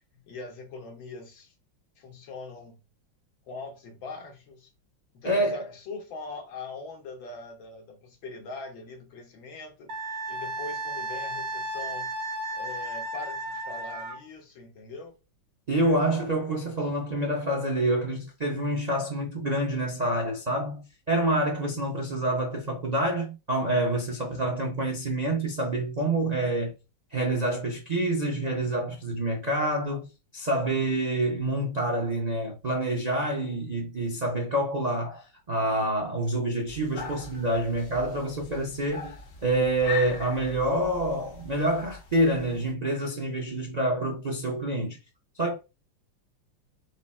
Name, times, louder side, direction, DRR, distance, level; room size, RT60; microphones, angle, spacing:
voice 1, 0.1-1.5 2.0-2.8 3.5-4.7 5.1-12.1 12.5-15.1 16.8-16.9 24.2-24.3, left 3 dB, 85° left, 2.0 m, -42 dB
voice 2, 5.2-5.6 15.7-26.7 27.1-39.2 39.4-45.0 45.3-45.5, right 1 dB, 90° right, 0.3 m, -27 dB
Wind instrument woodwind instrument, 9.9-14.2, right 2 dB, 60° right, 1.2 m, -34 dB
sound 1, 36.7-42.7, left 5 dB, 40° left, 0.9 m, -40 dB
4.9 x 2.1 x 4.2 m
omnidirectional pair, 2.1 m